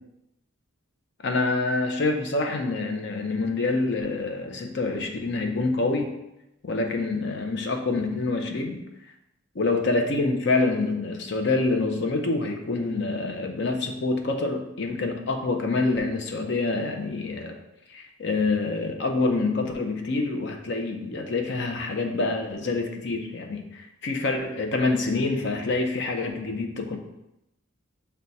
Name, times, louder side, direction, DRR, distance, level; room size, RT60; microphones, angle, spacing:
voice 1, 1.2-6.1 6.6-8.8 9.5-17.5 17.9-27.0, left 3 dB, 55° left, 4 dB, 0.6 m, -26 dB
5.9 x 2.2 x 4.0 m, 0.88 s
head